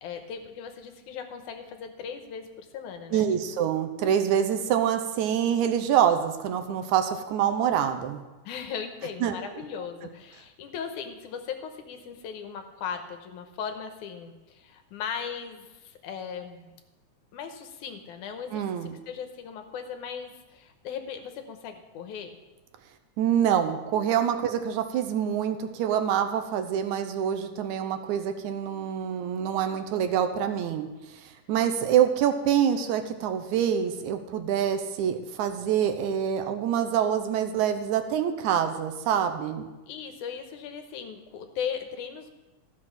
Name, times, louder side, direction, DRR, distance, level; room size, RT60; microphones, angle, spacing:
voice 1, 0.0-3.7 8.5-16.7 17.3-22.3 39.9-42.3, left 7 dB, 85° left, 6 dB, 2.4 m, -38 dB
voice 2, 3.1-8.2 9.2-9.3 18.5-19.0 23.2-30.9 31.2-39.7, right 9 dB, 80° right, 8 dB, 2.1 m, -26 dB
13.5 x 6.2 x 5.9 m, 1.1 s
omnidirectional pair, 3.5 m